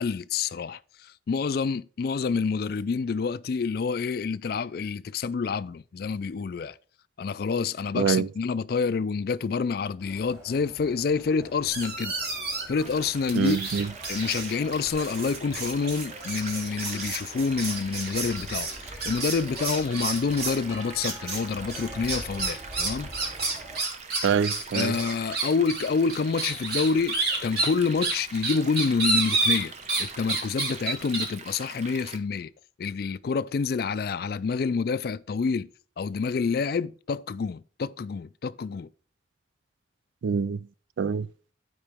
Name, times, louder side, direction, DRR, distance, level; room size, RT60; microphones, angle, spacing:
voice 1, 0.0-6.8 7.2-12.1 12.7-13.6 14.1-23.1 24.7-29.7 30.0-32.5 32.8-35.7 36.0-38.9, left 5 dB, 50° left, 0.3 m, -28 dB
voice 2, 8.0-8.3 13.4-13.9 24.2-24.9 40.2-40.7 41.0-41.3, right 6 dB, 80° right, 0.3 m, -25 dB
sound 1, 10.0-23.8, right 1 dB, 15° right, 2.6 m, -45 dB
sound 2, 11.7-12.8 13.3-20.6 21.0-21.4 21.7-30.0 30.3-31.3, right 3 dB, 55° right, 2.3 m, -30 dB
sound 3, 12.8-32.2, right 4 dB, 35° right, 0.8 m, -44 dB
11.5 x 4.9 x 3.5 m
head